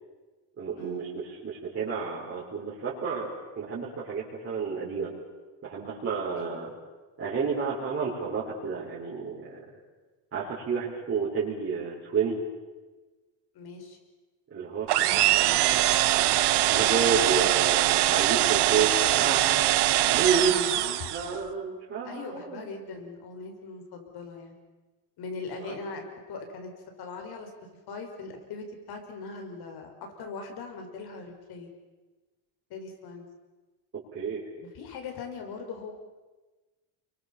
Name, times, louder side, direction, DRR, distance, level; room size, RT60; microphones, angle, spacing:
voice 1, 0.6-5.1 5.6-6.7 7.2-9.6 10.3-12.4 14.5-15.8 16.7-20.8 21.1-22.7 25.6-25.7 34.1-34.4, right 5 dB, 30° right, -6 dB, 5.6 m, -31 dB
voice 2, 13.5-14.0 20.7-21.1 22.0-24.6 25.2-26.0 26.3-26.7 27.0-27.5 27.9-31.7 32.7-33.3 34.7-36.0, left 4 dB, 55° left, 4 dB, 6.2 m, -40 dB
sound 1, 14.9-21.4, right 15 dB, 65° right, 1.4 m, -23 dB
29.5 x 23.5 x 7.4 m, 1.3 s
cardioid pair, 135°, 45 cm